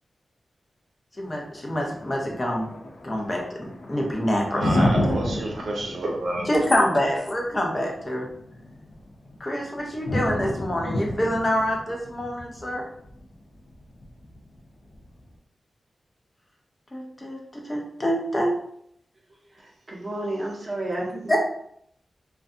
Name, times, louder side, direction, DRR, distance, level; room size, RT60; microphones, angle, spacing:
Thunder, 1.2-15.2, left 1 dB, 90° left, 0.5 m, -31 dB
voice 1, 1.2-2.7 3.0-4.9 6.5-8.2 9.4-12.8 16.9-18.5 21.3-21.4, equal, 25° left, 0.6 m, -26 dB
voice 2, 4.5-6.5, right 1 dB, 85° right, 0.5 m, -29 dB
voice 3, 19.5-21.4, right 1 dB, 30° right, 0.6 m, -31 dB
2.6 x 2.2 x 2.5 m
wide cardioid pair, 105°, 0 cm